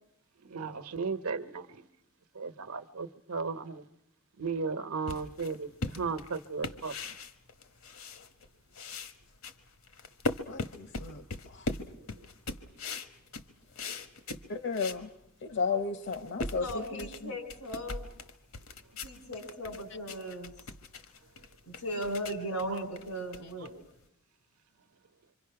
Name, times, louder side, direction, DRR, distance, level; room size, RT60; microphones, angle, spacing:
voice 1, 0.4-1.9 2.3-3.8 4.4-7.1 23.6-23.7, right 4 dB, 85° right, 11 dB, 1.1 m, -35 dB
sound 1, 5.1-8.5 8.7-15.1 15.5-15.6 15.9-24.0, left 2 dB, 70° left, 1.2 m, -40 dB
voice 2, 10.5-11.7 14.5-15.1 15.4-17.4, left 4 dB, 55° left, 10 dB, 0.8 m, -34 dB
voice 3, 16.6-18.1 19.0-20.5 21.7-23.7, equal, 85° left, 8 dB, 4.0 m, -37 dB
26.0 x 25.0 x 5.9 m, 0.80 s
head